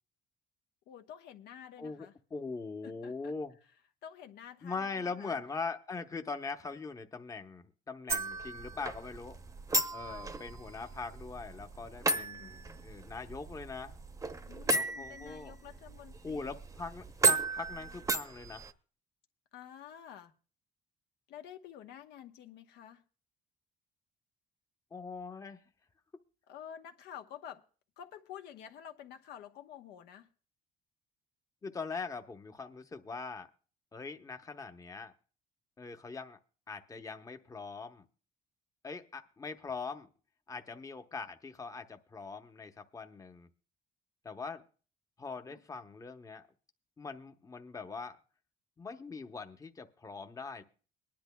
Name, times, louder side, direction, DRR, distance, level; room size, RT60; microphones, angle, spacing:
voice 1, 0.9-2.1 2.8-3.3 4.0-5.4 10.1-10.3 12.1-12.9 14.5-16.5 19.5-20.3 21.3-23.0 26.5-27.6 28.0-30.3 45.5-45.6, left 9 dB, 80° left, 6 dB, 1.0 m, -50 dB
voice 2, 1.8-3.6 4.6-9.4 9.9-13.9 14.7-15.5 16.2-18.7 24.9-25.6 31.6-33.5 33.9-35.1 35.8-36.4 36.7-38.0 38.8-40.1 40.5-43.5 44.2-44.6 45.2-46.4 47.0-48.2 48.8-50.6, left 4 dB, 20° left, 7 dB, 0.8 m, -42 dB
sound 1, 8.1-18.7, right 2 dB, 20° right, 0.8 m, -35 dB
23.0 x 10.5 x 2.2 m, 0.40 s
cardioid pair, 110°, 17 cm